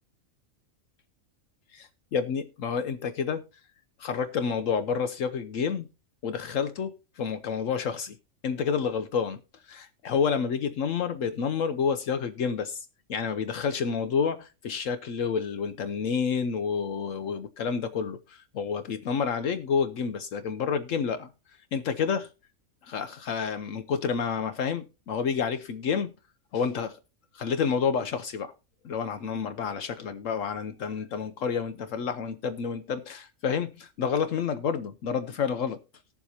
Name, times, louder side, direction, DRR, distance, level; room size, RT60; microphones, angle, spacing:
voice 1, 1.7-3.4 4.0-5.9 6.2-8.2 8.4-9.4 9.6-21.3 21.7-22.3 22.8-26.1 26.5-27.0 27.3-28.5 28.8-35.8, left 6 dB, 70° left, 1.1 m, -29 dB
19.0 x 7.1 x 2.8 m
omnidirectional pair, 1.4 m